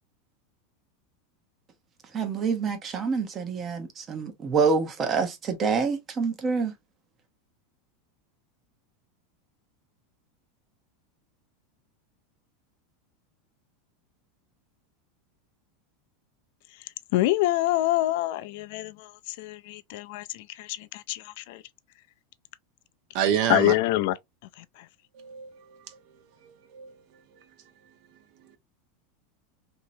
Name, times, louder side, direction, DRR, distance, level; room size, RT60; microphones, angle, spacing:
voice 1, 2.1-6.7, right 5 dB, 30° right, 0.8 m, -27 dB
voice 2, 16.7-21.6 23.5-24.2 24.6-24.9, left 16 dB, 65° left, 0.4 m, -27 dB
voice 3, 23.1-23.7 25.1-26.0 26.4-26.9, right 9 dB, 55° right, 0.8 m, -28 dB
3.0 x 2.7 x 2.6 m
supercardioid pair, 130°, 0 cm